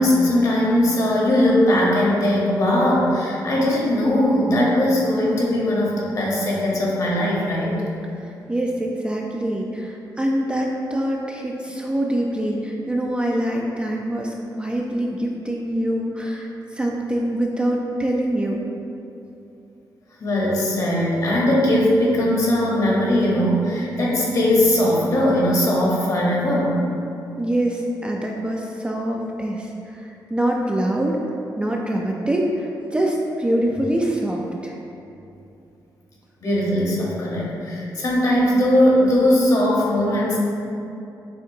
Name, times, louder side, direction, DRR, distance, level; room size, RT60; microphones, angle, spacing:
voice 1, 0.0-7.8 20.2-26.8 36.4-40.4, left 1 dB, 45° left, -4 dB, 1.0 m, -19 dB
voice 2, 8.2-18.6 27.4-31.2 31.6-34.8, right 1 dB, 15° right, -1 dB, 0.3 m, -24 dB
6.4 x 2.5 x 2.7 m, 2.8 s
cardioid pair, 105°, 8 cm